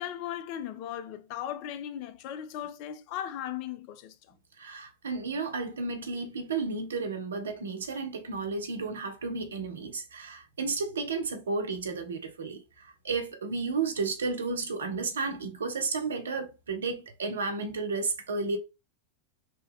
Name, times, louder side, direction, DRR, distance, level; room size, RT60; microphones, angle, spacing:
voice 1, 0.0-4.3, left 10 dB, 45° left, 0.4 m, -37 dB
voice 2, 4.6-18.6, right 4 dB, 65° right, 0.6 m, -32 dB
2.9 x 2.2 x 3.2 m
figure-of-eight pair, 90°, 0 cm